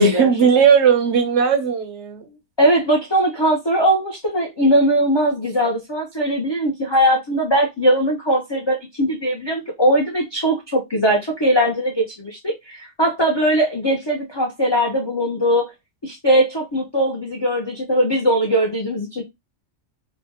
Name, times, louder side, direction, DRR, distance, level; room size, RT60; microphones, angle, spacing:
voice 1, 0.0-2.3, right 6 dB, 65° right, 0.7 m, -17 dB
voice 2, 2.6-15.7 16.0-19.2, equal, 45° left, 0.3 m, -20 dB
3.3 x 2.1 x 2.7 m
omnidirectional pair, 1.5 m